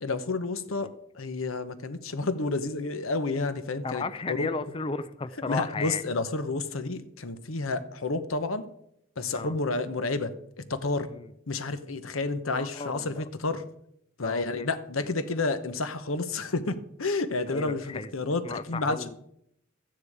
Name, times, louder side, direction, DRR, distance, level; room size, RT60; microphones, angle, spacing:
voice 1, 0.0-4.5 5.5-8.6 9.2-11.1 11.5-13.6 14.2-19.1, left 3 dB, 90° left, 11 dB, 1.0 m, -30 dB
voice 2, 3.8-6.0 9.3-9.5 11.1-11.3 12.5-13.3 14.2-14.7 15.0-15.1 17.5-18.1 18.4-19.2, left 4 dB, 25° left, 12 dB, 0.4 m, -34 dB
13.5 x 9.5 x 4.9 m, 0.75 s
head